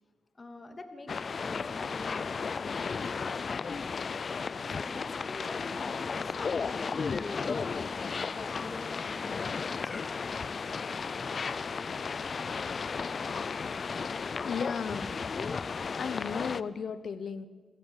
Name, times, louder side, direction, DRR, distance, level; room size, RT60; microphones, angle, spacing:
voice 1, 0.3-4.5 4.8-10.0, left 2 dB, 40° left, 7 dB, 2.8 m, -46 dB
sound 1, 1.1-16.6, left 5 dB, 60° left, 0.6 m, -34 dB
voice 2, 14.4-15.1 16.0-17.5, left 6 dB, 80° left, 14 dB, 1.1 m, -35 dB
26.0 x 16.0 x 7.5 m, 1.5 s
cardioid pair, 60°, 0 cm